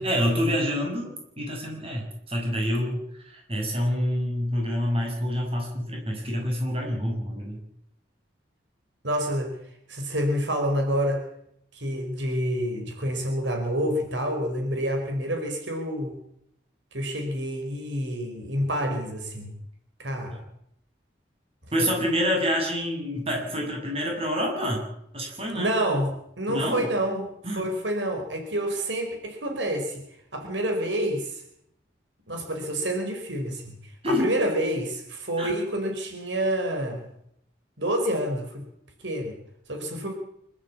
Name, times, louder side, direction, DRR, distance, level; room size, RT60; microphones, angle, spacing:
voice 1, 0.0-3.0 3.3-7.6 21.7-24.8 25.1-25.7 26.5-26.9 27.4-27.7 34.0-34.3 35.4-35.5, equal, 30° right, 0 dB, 7.2 m, -27 dB
voice 2, 9.0-9.5 9.9-11.3 11.7-16.2 16.9-19.6 20.0-20.4 25.5-27.3 27.5-30.0 30.3-31.4 32.3-37.0 37.8-38.6 39.0-39.4 39.7-40.1, right 1 dB, 75° right, 4 dB, 4.8 m, -28 dB
25.5 x 13.5 x 8.7 m, 0.75 s
head